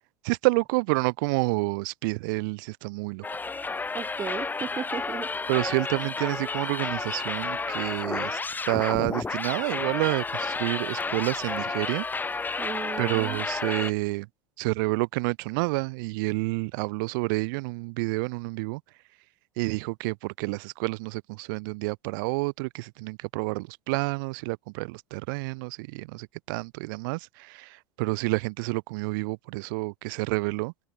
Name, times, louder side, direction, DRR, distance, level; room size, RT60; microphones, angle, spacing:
voice 1, 0.2-3.2 5.5-8.4 8.7-12.0 13.0-14.3 14.6-18.8 19.6-30.7, right 27 dB, 60° right, 4.0 m, -29 dB
sound 1, 3.2-13.9, left 4 dB, 15° left, 5.5 m, -31 dB
voice 2, 3.9-5.3 12.6-13.4, right 7 dB, 25° right, 4.2 m, -35 dB
hypercardioid pair, 85°, 12 cm